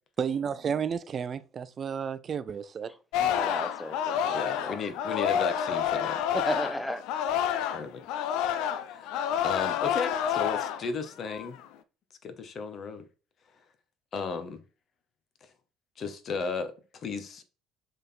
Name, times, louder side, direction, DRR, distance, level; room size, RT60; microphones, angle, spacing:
voice 1, 0.2-2.9, right 7 dB, 40° right, 0.6 m, -32 dB
voice 2, 2.9-4.8 6.3-7.0, equal, 10° left, 0.9 m, -35 dB
Singing, 3.1-7.8 8.1-10.9 11.3-11.6, left 9 dB, 60° left, 0.5 m, -29 dB
voice 3, 4.3-6.2 7.7-8.1 8.8-11.6 12.2-13.1 14.1-14.6 15.4-15.5 16.0-17.4, left 5 dB, 45° left, 1.2 m, -35 dB
6.5 x 3.9 x 4.4 m
figure-of-eight pair, 55°, 0 cm